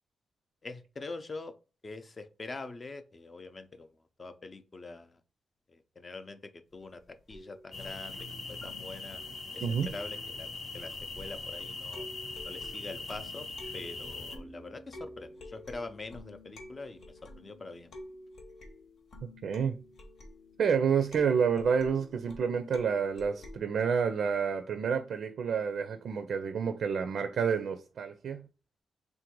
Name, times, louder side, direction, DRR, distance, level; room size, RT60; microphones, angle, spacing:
voice 1, 0.6-1.5 1.8-3.9 4.2-5.2 5.7-9.2 9.5-10.5 10.7-12.1 12.4-13.5 13.7-17.9, left 3 dB, 30° left, 0.5 m, -44 dB
sound 1, 7.3-11.5 11.9-23.6, left 1 dB, 80° left, 1.0 m, -50 dB
sound 2, 7.7-14.4, left 3 dB, 45° left, 0.8 m, -41 dB
voice 2, 19.2-19.8 20.6-28.4, right 6 dB, 75° right, 0.4 m, -29 dB
3.5 x 2.6 x 4.5 m
wide cardioid pair, 135°, 0 cm